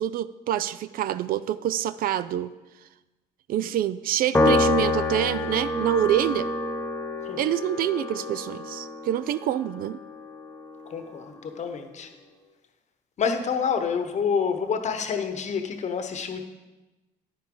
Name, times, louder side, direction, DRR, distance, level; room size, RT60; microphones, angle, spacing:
voice 1, 0.0-2.5 3.5-6.5 7.4-10.0, right 11 dB, 60° right, 15 dB, 0.4 m, -26 dB
Piano, 4.3-10.9, left 2 dB, 10° left, 0.9 m, -27 dB
voice 2, 10.9-12.1 13.2-16.4, left 6 dB, 45° left, 7 dB, 1.0 m, -28 dB
9.9 x 9.7 x 3.8 m, 1.1 s
cardioid pair, 110°, 17 cm